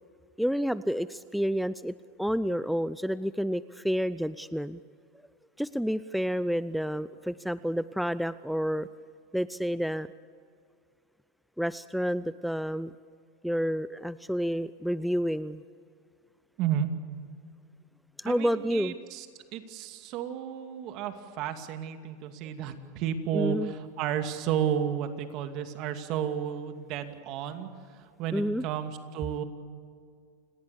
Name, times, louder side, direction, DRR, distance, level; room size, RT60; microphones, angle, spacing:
voice 1, 0.4-4.8 5.6-8.9 9.3-10.1 11.6-12.9 13.4-15.6 18.2-19.0 23.3-23.7 28.3-28.6, equal, ahead, 16 dB, 0.5 m, -29 dB
voice 2, 16.6-16.9 18.3-19.3 19.5-29.4, right 9 dB, 50° right, 7 dB, 2.5 m, -32 dB
29.0 x 19.0 x 7.1 m, 2.2 s
hypercardioid pair, 105°, 0 cm